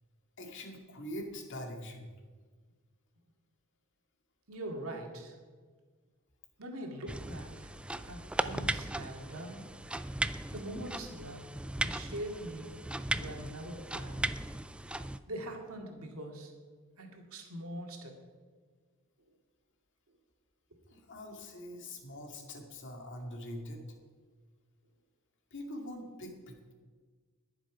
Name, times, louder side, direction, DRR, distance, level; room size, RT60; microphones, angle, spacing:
voice 1, 0.4-2.1 20.9-23.8 25.5-26.7, left 1 dB, 60° left, 3 dB, 2.1 m, -43 dB
voice 2, 4.5-5.4 6.6-7.7 8.0-9.6 10.5-11.4 11.8-12.8 13.1-14.2 15.3-16.5 17.0-18.2 20.9-21.0 21.7-21.9, right 1 dB, 70° right, 2 dB, 2.2 m, -43 dB
sound 1, 7.1-15.2, right 1 dB, 5° right, 0.3 m, -37 dB
20.5 x 7.4 x 5.0 m, 1.5 s
head